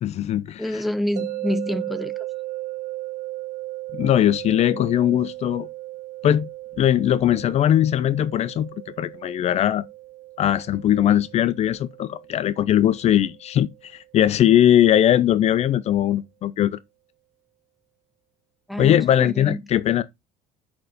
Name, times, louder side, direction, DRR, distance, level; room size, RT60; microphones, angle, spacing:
voice 1, 0.0-0.8 3.9-5.7 6.2-6.5 6.8-8.7 9.0-9.8 10.4-16.8 18.8-20.0, left 11 dB, 50° left, 0.5 m, -20 dB
voice 2, 0.6-2.1 18.7-19.6, left 1 dB, ahead, 0.7 m, -27 dB
sound 1, 1.2-14.2, right 17 dB, 60° right, 1.1 m, -36 dB
6.3 x 4.4 x 5.0 m
cardioid pair, 105°, 15 cm